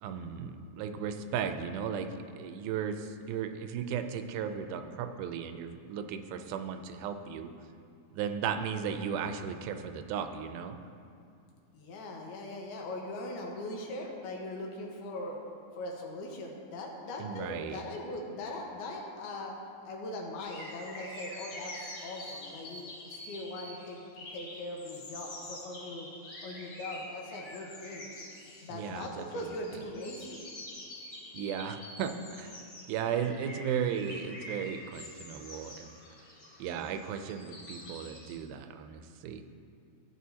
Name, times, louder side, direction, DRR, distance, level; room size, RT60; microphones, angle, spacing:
voice 1, 0.0-7.5 8.1-10.8 17.2-17.8 28.7-29.5 31.3-32.6 32.9-35.9 36.6-39.4, right 7 dB, 85° right, 8 dB, 2.4 m, -35 dB
voice 2, 11.7-15.4 15.7-19.6 19.8-26.1 26.4-28.1 28.6-30.4, left 1 dB, 90° left, 0 dB, 3.2 m, -40 dB
sound 1, 20.4-38.4, left 1 dB, 55° left, 3.9 m, -47 dB
15.5 x 9.0 x 2.8 m, 2.4 s
omnidirectional pair, 4.3 m